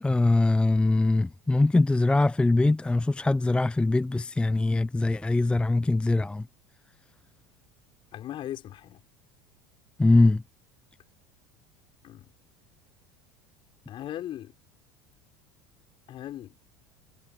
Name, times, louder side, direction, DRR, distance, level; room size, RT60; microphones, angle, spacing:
voice 1, 0.0-6.4 10.0-10.4, left 2 dB, 10° left, 0.5 m, -22 dB
voice 2, 8.1-9.0 12.0-12.3 13.9-14.5 16.1-16.5, left 12 dB, 45° left, 5.6 m, -38 dB
hypercardioid pair, 75°, 12 cm